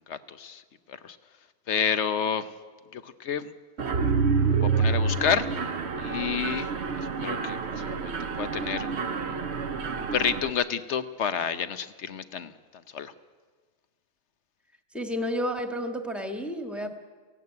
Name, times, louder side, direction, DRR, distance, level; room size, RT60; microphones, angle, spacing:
voice 1, 0.1-0.6 0.9-1.2 1.7-2.5 2.9-3.5 4.4-5.6 6.0-6.7 7.0-9.4 10.0-13.1, left 7 dB, 55° left, 12 dB, 0.9 m, -30 dB
Mechanisms, 3.8-10.5, right 5 dB, 50° right, 1.0 m, -28 dB
voice 2, 14.9-16.9, equal, ahead, 5 dB, 1.4 m, -31 dB
17.0 x 16.0 x 9.5 m, 1.4 s
omnidirectional pair, 1.7 m